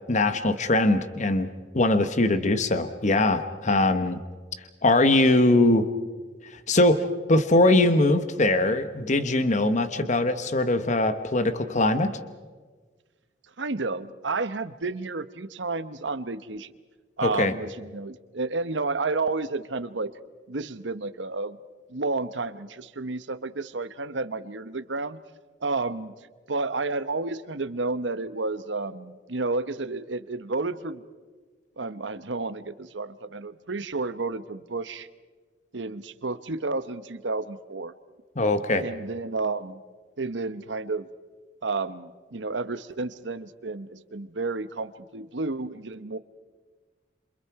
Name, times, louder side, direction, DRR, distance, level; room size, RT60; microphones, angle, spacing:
voice 1, 0.1-1.5 1.7-4.2 4.8-5.8 6.7-12.1 17.2-17.5 38.4-38.8, left 2 dB, 40° left, 10 dB, 1.1 m, -21 dB
voice 2, 13.6-16.7 17.2-20.1 20.5-21.6 21.9-25.2 25.6-31.0 31.8-35.1 35.7-37.9 38.8-39.8 40.2-41.1 41.6-46.2, right 3 dB, 75° right, 13 dB, 1.0 m, -31 dB
28.0 x 27.0 x 4.8 m, 1.4 s
head